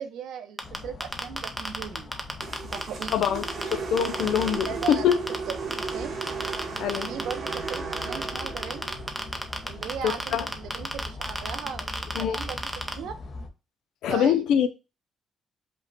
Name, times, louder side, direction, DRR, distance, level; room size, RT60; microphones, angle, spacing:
voice 1, 0.0-2.1 2.6-3.3 4.2-5.1 5.5-6.1 7.1-8.9 9.6-13.1 14.1-14.7, right 8 dB, 90° right, 0.6 m, -38 dB
sound 1, 0.6-13.5, left 3 dB, 40° left, 0.8 m, -42 dB
sound 2, 0.6-3.7 4.0-5.9 6.2-12.9, right 1 dB, 5° right, 0.5 m, -30 dB
sound 3, 2.4-10.7, right 5 dB, 50° right, 1.0 m, -36 dB
voice 2, 3.1-3.5 3.7-5.2 6.8-7.1 10.0-10.5 12.1-12.4 14.0-14.7, left 9 dB, 90° left, 0.4 m, -24 dB
5.2 x 2.2 x 4.0 m
cardioid pair, 150°, 0 cm